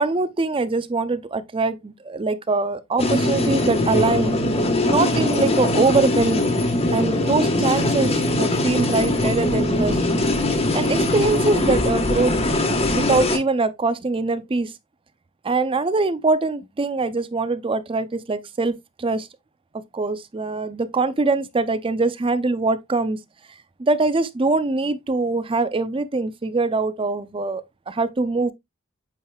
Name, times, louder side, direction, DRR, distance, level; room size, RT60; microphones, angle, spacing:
voice 1, 0.0-4.3 4.9-6.4 6.9-10.0 10.7-12.4 12.9-14.7 15.4-19.3 19.9-23.2 23.8-28.5, right 3 dB, 25° right, 0.4 m, -23 dB
sound 1, 3.0-13.4, left 1 dB, 25° left, 1.3 m, -21 dB
8.5 x 4.8 x 2.3 m
head